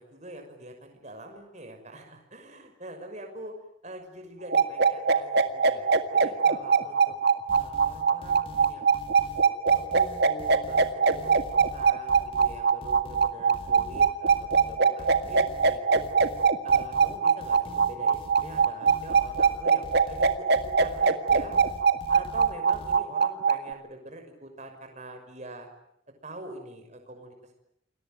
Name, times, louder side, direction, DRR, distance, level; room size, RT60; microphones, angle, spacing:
voice 1, 0.0-3.5 3.8-7.2 7.5-8.9 9.7-16.0 16.6-21.6 22.1-25.7 26.2-27.5, right 1 dB, 35° right, 5 dB, 6.1 m, -44 dB
sound 1, 4.5-23.7, right 5 dB, 50° right, 1.9 m, -21 dB
sound 2, 7.5-23.0, left 1 dB, 25° left, 2.4 m, -44 dB
29.0 x 22.0 x 9.1 m, 0.75 s
head